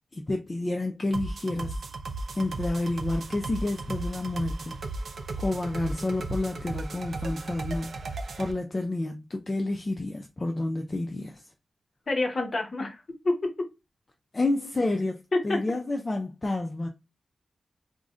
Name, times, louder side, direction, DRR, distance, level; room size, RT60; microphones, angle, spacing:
voice 1, 0.1-1.9 2.3-4.9 5.4-11.4 14.3-16.9, left 2 dB, 25° left, 0.3 m, -30 dB
sound 1, 1.1-8.5, right 2 dB, 65° right, 0.3 m, -35 dB
voice 2, 12.1-13.0 13.2-13.7 15.3-15.6, left 2 dB, 40° left, 0.7 m, -27 dB
2.4 x 2.1 x 3.6 m
wide cardioid pair, 175°, 0 cm